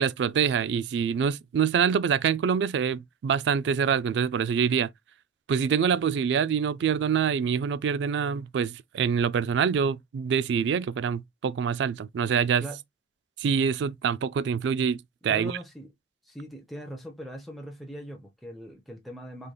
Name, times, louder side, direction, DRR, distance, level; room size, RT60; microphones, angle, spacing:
voice 1, 0.0-4.9 5.5-12.7 13.4-15.6, right 7 dB, 80° right, 0.3 m, -25 dB
voice 2, 15.2-15.9 16.3-19.5, equal, ahead, 0.8 m, -41 dB
3.7 x 3.4 x 2.2 m
head